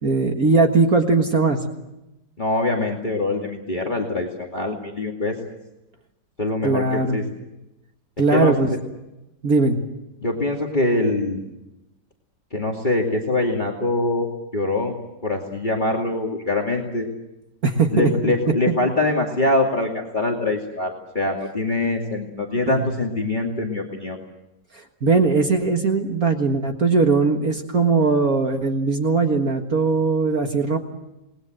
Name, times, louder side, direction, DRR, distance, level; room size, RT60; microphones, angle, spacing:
voice 1, 0.0-1.6 6.6-7.2 8.2-8.7 9.4-9.8 17.6-18.3 22.7-22.9 24.7-30.8, right 4 dB, 55° right, 4 dB, 2.1 m, -20 dB
voice 2, 2.4-5.3 6.4-7.2 8.3-8.8 10.2-11.4 12.5-15.0 15.2-17.1 17.9-24.2, left 2 dB, 25° left, 0 dB, 2.6 m, -23 dB
28.0 x 20.5 x 7.9 m, 0.93 s
omnidirectional pair, 1.9 m